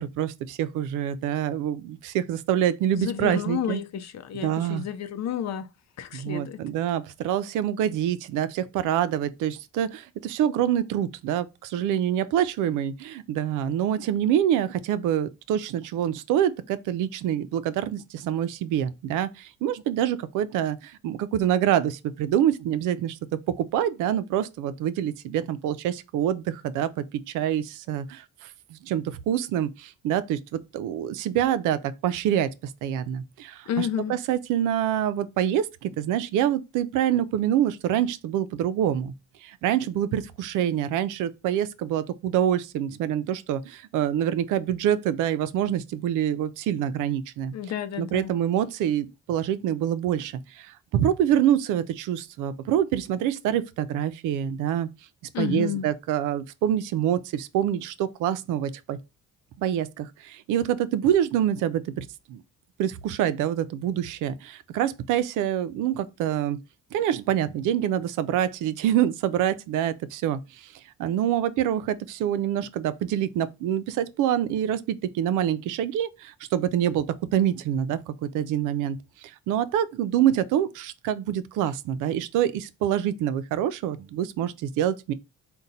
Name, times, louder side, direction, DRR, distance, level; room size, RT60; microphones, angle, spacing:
voice 1, 0.0-3.8 4.4-4.8 6.1-23.2 23.6-27.0 27.3-28.2 28.7-32.5 32.8-39.1 39.4-47.5 48.0-54.9 55.4-59.0 59.6-62.4 62.8-66.6 66.9-70.7 71.0-77.1 77.3-79.0 79.5-85.1, right 10 dB, 90° right, 0.5 m, -26 dB
voice 2, 2.9-5.7 6.0-6.6 33.7-34.2 47.5-48.3 55.3-55.9, left 9 dB, 60° left, 0.6 m, -31 dB
3.9 x 2.2 x 4.0 m
cardioid pair, 90°, 30 cm